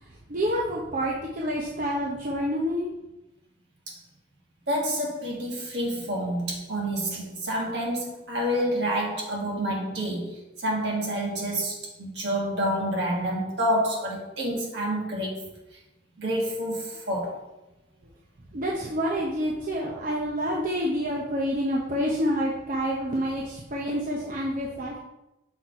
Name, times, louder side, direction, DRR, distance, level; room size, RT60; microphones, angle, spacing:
voice 1, 0.3-2.9 18.5-25.0, equal, 45° right, -3 dB, 0.8 m, -28 dB
voice 2, 4.7-15.4 16.2-17.4, equal, 65° right, -2 dB, 1.7 m, -28 dB
6.1 x 4.1 x 4.5 m, 0.95 s
head